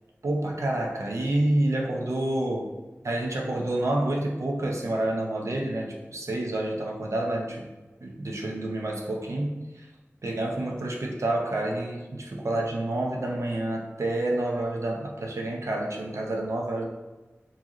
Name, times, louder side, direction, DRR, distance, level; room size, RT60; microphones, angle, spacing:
voice 1, 0.2-2.7 3.0-7.7 8.0-9.9 10.2-16.9, right 1 dB, 90° right, 0 dB, 0.6 m, -28 dB
4.9 x 2.8 x 2.9 m, 1.2 s
wide cardioid pair, 40°, 5 cm